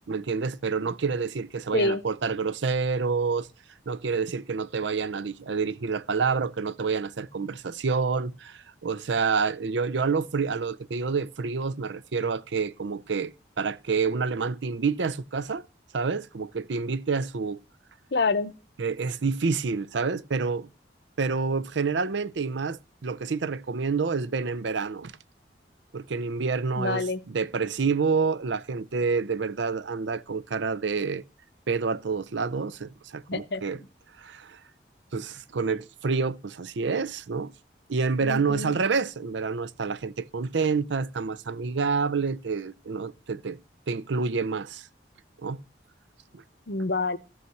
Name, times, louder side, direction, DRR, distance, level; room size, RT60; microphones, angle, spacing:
voice 1, 0.1-3.5 3.9-15.6 15.9-17.6 18.8-20.7 21.2-25.1 25.9-31.2 31.7-33.8 34.2-34.6 35.1-37.5 37.9-43.6 43.9-44.9 45.4-45.6 46.3-46.4, right 5 dB, 80° right, 0.6 m, -28 dB
voice 2, 18.1-18.5 26.8-27.2 33.3-33.6 38.2-38.7 46.7-47.2, left 3 dB, 65° left, 0.8 m, -27 dB
14.5 x 5.7 x 7.6 m
head